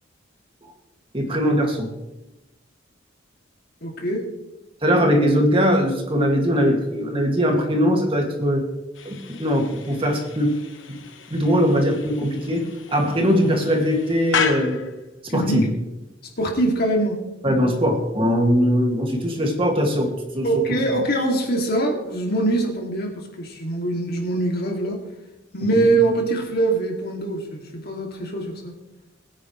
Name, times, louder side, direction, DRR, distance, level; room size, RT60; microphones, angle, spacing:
voice 1, 1.1-1.9 4.8-8.7 9.0-10.5 10.9-11.0 11.3-14.8 15.3-15.7 17.4-20.8 25.7-25.9, equal, 30° right, 1 dB, 2.2 m, -21 dB
voice 2, 3.8-4.2 15.3-15.6 16.4-17.2 20.4-25.0 25.5-28.7, right 2 dB, 55° left, 1 dB, 2.5 m, -23 dB
sound 1, 8.9-15.1, left 6 dB, 75° left, 1.2 m, -33 dB
21.0 x 9.7 x 3.2 m, 0.98 s
head